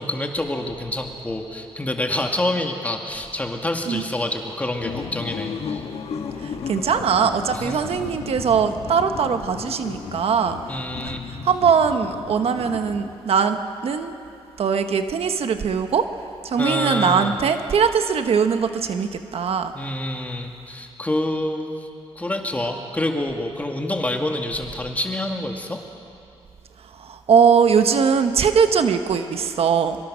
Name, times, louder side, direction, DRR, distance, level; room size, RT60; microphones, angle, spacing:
voice 1, 0.0-5.8 7.5-7.8 10.7-11.2 16.6-17.4 19.7-21.9 22.2-25.8, left 1 dB, 15° left, 2 dB, 2.2 m, -27 dB
sound 1, 4.8-13.3, left 6 dB, 75° left, 1.6 m, -34 dB
voice 2, 6.4-10.6 11.0-11.1 11.4-14.2 14.6-16.1 16.4-19.7 26.8-30.0, right 6 dB, 75° right, 7 dB, 1.3 m, -21 dB
24.5 x 24.0 x 6.4 m, 2.5 s
wide cardioid pair, 120°, 10 cm